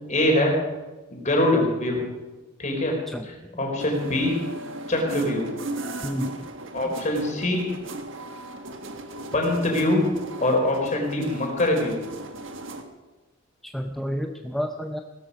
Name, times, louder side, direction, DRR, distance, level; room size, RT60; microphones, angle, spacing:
voice 1, 0.1-0.5 1.1-2.0 2.6-3.0 3.3-4.4 4.9-5.4 6.7-7.7 9.3-10.0 10.4-12.0, left 1 dB, 35° left, 1 dB, 4.0 m, -23 dB
sound 1, 3.8-12.8, right 2 dB, 65° right, 1.5 m, -36 dB
voice 2, 6.0-6.5 13.6-15.0, equal, ahead, 5 dB, 0.6 m, -30 dB
17.0 x 13.5 x 5.4 m, 1.2 s
head